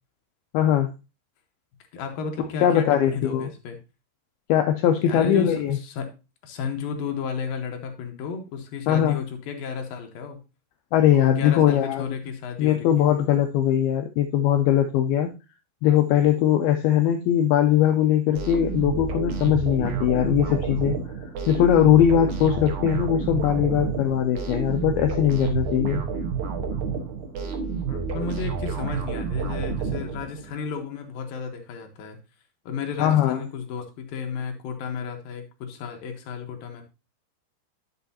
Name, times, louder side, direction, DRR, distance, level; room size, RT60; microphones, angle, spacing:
voice 1, 0.5-0.9 2.6-3.5 4.5-5.8 8.9-9.2 10.9-12.1 12.6-15.3 15.8-26.0 33.0-33.4, left 10 dB, 90° left, 5 dB, 2.1 m, -20 dB
voice 2, 1.9-3.8 5.0-6.1 6.4-10.4 11.1-13.1 27.9-32.2 32.7-36.8, left 6 dB, 70° left, 4 dB, 2.5 m, -33 dB
sound 1, 18.3-30.6, right 5 dB, 65° right, 2.0 m, -29 dB
10.5 x 6.8 x 2.8 m, 0.29 s
omnidirectional pair, 5.0 m